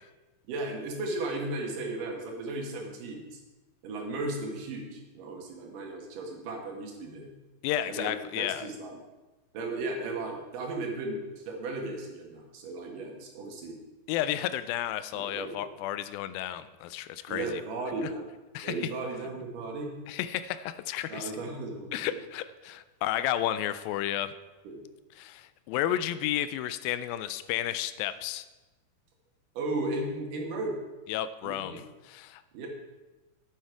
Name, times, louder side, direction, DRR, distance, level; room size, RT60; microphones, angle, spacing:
voice 1, 0.5-3.4 3.8-7.3 7.9-9.0 9.5-13.8 15.1-15.6 17.3-18.3 18.6-20.0 21.1-22.2 24.6-24.8 29.5-30.8 31.4-31.8 32.5-32.7, right 2 dB, 70° right, 1 dB, 3.0 m, -35 dB
voice 2, 7.6-8.7 14.1-17.6 18.5-18.7 20.1-21.3 21.9-24.3 25.2-28.5 31.1-32.4, left 12 dB, 85° left, 14 dB, 2.3 m, -32 dB
10.0 x 9.2 x 4.6 m, 1.1 s
omnidirectional pair, 4.1 m